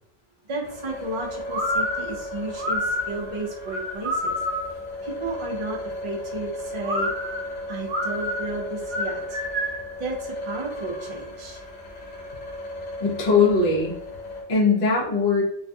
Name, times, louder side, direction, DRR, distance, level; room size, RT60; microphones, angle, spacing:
voice 1, 0.5-4.3 5.0-7.1 7.7-9.4 10.0-11.6, right 2 dB, 45° right, -2 dB, 0.4 m, -33 dB
sound 1, 0.6-14.4, left 1 dB, 80° left, 0.9 m, -36 dB
sound 2, 1.5-4.8 6.8-9.9, equal, 85° right, 0.9 m, -28 dB
voice 2, 13.0-13.9 14.5-15.4, left 4 dB, 50° left, -4 dB, 0.7 m, -20 dB
2.4 x 2.2 x 2.6 m, 0.72 s
omnidirectional pair, 1.0 m